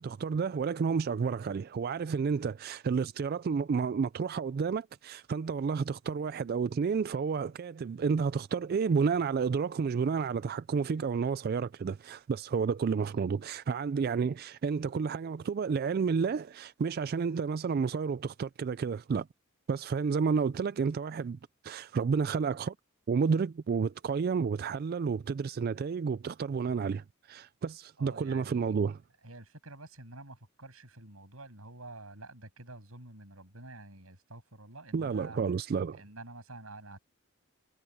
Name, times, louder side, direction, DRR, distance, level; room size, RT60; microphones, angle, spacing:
voice 1, 0.0-19.3 19.7-22.7 23.1-29.0 34.9-36.0, right 5 dB, 45° right, 0.3 m, -31 dB
voice 2, 28.0-28.8 29.2-35.4 35.9-37.0, right 2 dB, 80° right, 7.7 m, -48 dB
head